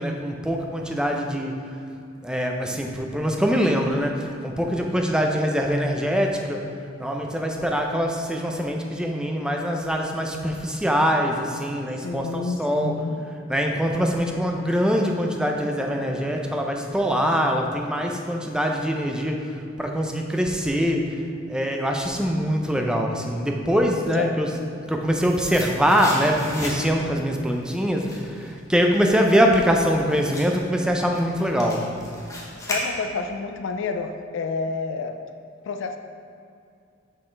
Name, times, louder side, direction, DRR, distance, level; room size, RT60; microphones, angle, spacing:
voice 1, 0.0-1.6 2.2-6.7 7.0-13.0 13.5-21.1 21.5-24.5 24.9-31.8, equal, 5° right, 2 dB, 0.5 m, -23 dB
voice 2, 12.0-13.2 24.1-24.3 32.6-35.2 35.6-36.0, left 4 dB, 65° left, 6 dB, 0.4 m, -29 dB
sound 1, 24.7-27.1 27.5-33.4 33.7-33.8, left 1 dB, 15° left, 0.9 m, -36 dB
6.4 x 5.7 x 3.3 m, 2.4 s
head